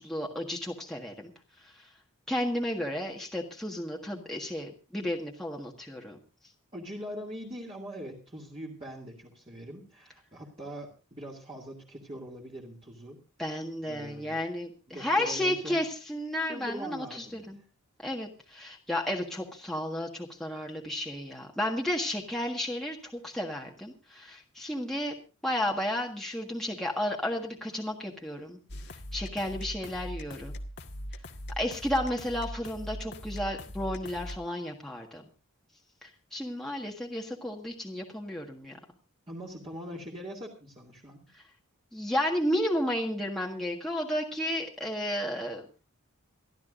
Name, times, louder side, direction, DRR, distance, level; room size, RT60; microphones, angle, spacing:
voice 1, 0.0-1.3 1.6-1.9 2.3-6.2 13.4-17.6 18.0-25.1 25.4-28.6 29.1-30.5 31.6-35.2 36.0-38.8 41.9-45.8, left 1 dB, ahead, -1 dB, 1.6 m, -32 dB
voice 2, 6.7-13.2 13.9-14.4 14.9-15.8 16.5-17.7 39.3-41.2, equal, 25° right, -3 dB, 2.5 m, -42 dB
sound 1, 28.7-34.4, equal, 50° left, 1.7 m, -40 dB
27.5 x 12.0 x 2.6 m, 0.32 s
head